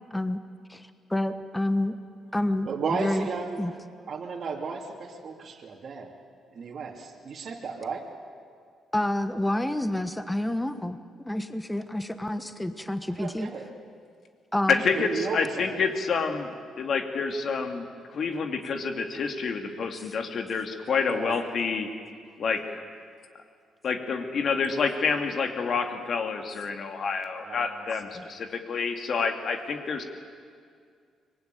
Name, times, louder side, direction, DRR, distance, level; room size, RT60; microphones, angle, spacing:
voice 1, 0.7-1.9 2.3-3.3 3.6-3.7 8.9-11.0 11.2-13.5 14.5-14.8 28.1-28.2, left 1 dB, 10° left, 10 dB, 1.2 m, -28 dB
voice 2, 2.7-3.6 4.1-6.1 6.5-8.1 13.1-13.7 14.9-15.8 21.1-21.4 27.4-27.8, right 5 dB, 50° right, 0 dB, 2.8 m, -34 dB
voice 3, 14.7-16.5 16.8-21.9 22.4-22.8 23.8-30.0, left 5 dB, 55° left, 5 dB, 2.6 m, -28 dB
24.5 x 21.0 x 9.4 m, 2.2 s
cardioid pair, 90°, 0 cm